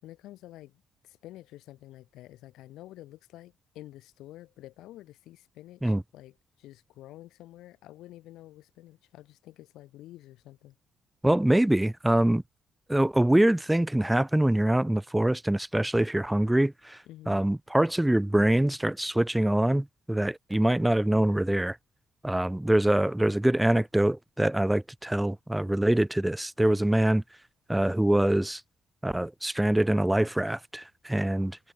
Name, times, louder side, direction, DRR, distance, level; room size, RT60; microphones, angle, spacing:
voice 1, 0.0-10.8 17.1-17.4, left 15 dB, 90° left, 3.7 m, -49 dB
voice 2, 11.2-12.4 12.9-17.0 17.3-21.8 22.2-27.2 27.7-28.6 29.0-31.6, right 1 dB, 5° right, 0.5 m, -24 dB
cardioid pair, 90°, 0 cm